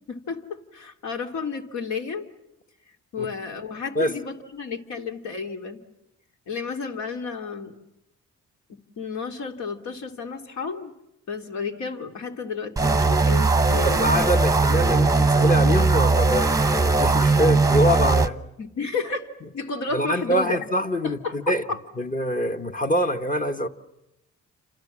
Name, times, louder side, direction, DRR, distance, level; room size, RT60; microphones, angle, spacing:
voice 1, 0.1-2.3 3.1-5.8 6.5-7.7 8.7-10.9 11.3-14.0 18.6-19.3 19.5-20.6 21.0-21.8, left 4 dB, 70° left, 2.8 m, -32 dB
sound 1, 12.8-18.3, right 3 dB, 10° right, 1.0 m, -19 dB
voice 2, 13.8-18.4 19.9-21.6 22.0-23.7, equal, 25° left, 1.4 m, -25 dB
29.5 x 27.0 x 7.4 m
cardioid pair, 90°, 30 cm